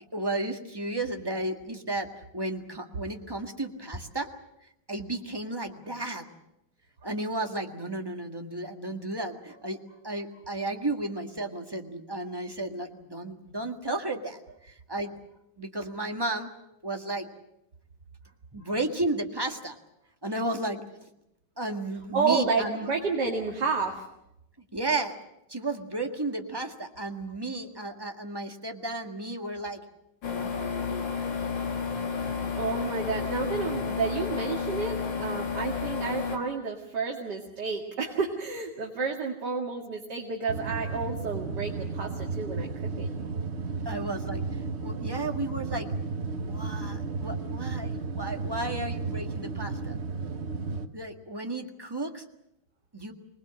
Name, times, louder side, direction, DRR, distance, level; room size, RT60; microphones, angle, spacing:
voice 1, 0.1-2.1 2.3-4.3 4.9-6.2 7.0-15.1 15.6-16.5 16.8-17.3 18.5-19.8 20.2-20.8 21.6-22.9 24.7-25.2 25.5-29.8 30.3-31.2 43.8-44.4 44.8-45.9 46.4-49.9 50.9-52.2 52.9-53.1, right 2 dB, 10° right, 4 dB, 1.7 m, -33 dB
voice 2, 22.1-24.1 32.2-42.7 43.0-43.1, right 4 dB, 55° right, 0 dB, 2.7 m, -30 dB
sound 1, 30.2-36.4, left 6 dB, 65° left, 2.7 m, -31 dB
sound 2, 40.5-50.9, right 4 dB, 40° right, 1.2 m, -33 dB
25.5 x 20.0 x 7.6 m, 0.83 s
omnidirectional pair, 2.2 m